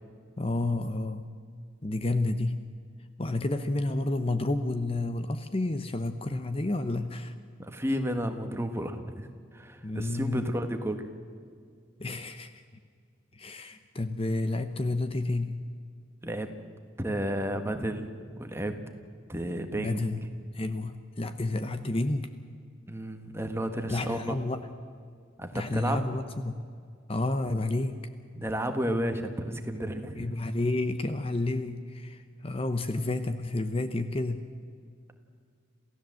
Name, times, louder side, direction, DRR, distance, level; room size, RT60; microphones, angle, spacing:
voice 1, 0.4-1.3 1.8-2.6 3.2-7.3 9.8-10.4 12.0-12.6 13.3-15.6 19.8-20.2 20.5-22.3 23.9-24.6 25.5-26.6 27.1-28.1 30.2-34.5, left 2 dB, 30° left, 10 dB, 0.8 m, -30 dB
voice 2, 7.6-11.0 16.2-16.5 17.0-18.1 18.4-18.7 19.3-20.0 22.9-24.2 25.4-26.0 28.3-30.3, equal, 15° right, 6 dB, 1.5 m, -32 dB
28.0 x 16.0 x 7.7 m, 2.2 s
head